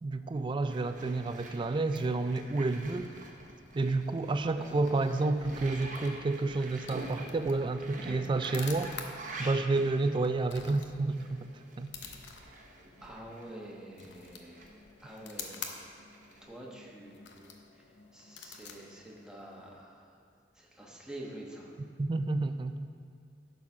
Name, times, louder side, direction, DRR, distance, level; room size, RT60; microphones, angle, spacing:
voice 1, 0.0-3.1 3.7-8.9 9.4-11.5 11.8-11.9 22.0-22.9, right 3 dB, 25° right, 10 dB, 0.3 m, -30 dB
sound 1, 0.7-13.6 14.0-16.4, right 2 dB, 45° right, 1.0 m, -46 dB
sound 2, 4.3-19.9, left 5 dB, 80° left, 0.8 m, -49 dB
voice 2, 13.0-14.7 15.0-16.1 16.4-17.8 18.1-20.2 20.5-21.7, right 1 dB, 5° right, -3 dB, 1.1 m, -47 dB
11.5 x 4.1 x 6.0 m, 2.3 s
head